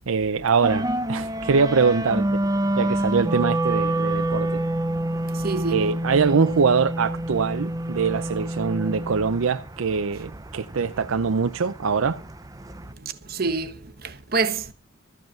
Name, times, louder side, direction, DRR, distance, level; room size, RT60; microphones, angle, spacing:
voice 1, 0.1-2.4 2.8-4.6 5.7-12.2, right 5 dB, 90° right, 0.6 m, -23 dB
sound 1, 0.6-12.9, right 1 dB, 15° right, 0.6 m, -28 dB
voice 2, 5.2-5.8 13.0-14.7, right 4 dB, 45° right, 1.2 m, -27 dB
14.0 x 8.1 x 7.6 m
head